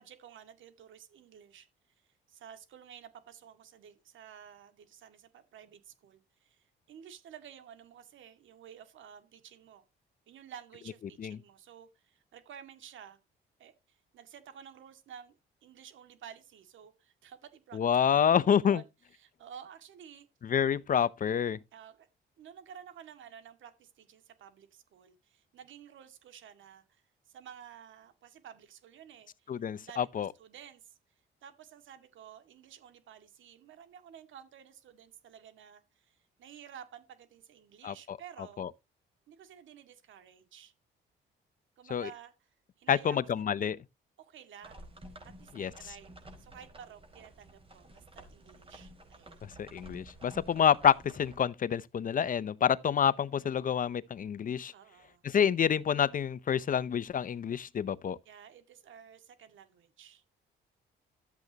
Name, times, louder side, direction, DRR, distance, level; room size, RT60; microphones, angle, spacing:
voice 1, 0.0-1.7 2.3-9.8 10.3-13.2 13.6-17.8 18.1-20.3 21.7-22.1 22.4-30.9 31.4-38.7 39.3-40.7 41.8-43.5 44.2-44.9 45.2-49.4 54.7-55.2 58.3-60.2, right 8 dB, 75° right, 2.0 m, -52 dB
voice 2, 17.7-18.8 20.4-21.6 29.5-30.3 37.8-38.2 38.6-38.7 41.9-42.1 42.9-43.8 45.6-45.7 49.6-54.7 55.2-58.2, left 8 dB, 45° left, 0.6 m, -28 dB
sound 1, 44.6-51.4, right 1 dB, 25° right, 4.9 m, -52 dB
13.0 x 8.0 x 2.9 m
cardioid pair, 90°, 20 cm